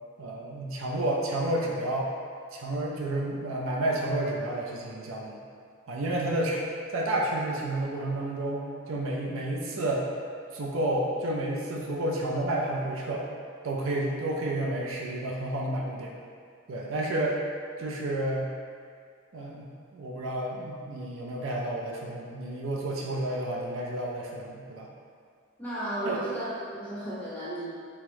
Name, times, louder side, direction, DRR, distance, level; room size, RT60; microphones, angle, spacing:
voice 1, 0.2-2.1 2.5-5.4 5.9-6.6 6.9-10.1 10.5-13.2 13.6-16.1 16.7-17.4 17.8-18.5 19.3-24.9 26.0-26.2, right 1 dB, 70° right, -3 dB, 0.5 m, -30 dB
voice 2, 25.6-27.7, right 1 dB, 10° left, -9 dB, 0.6 m, -34 dB
3.4 x 3.1 x 3.4 m, 2.2 s
head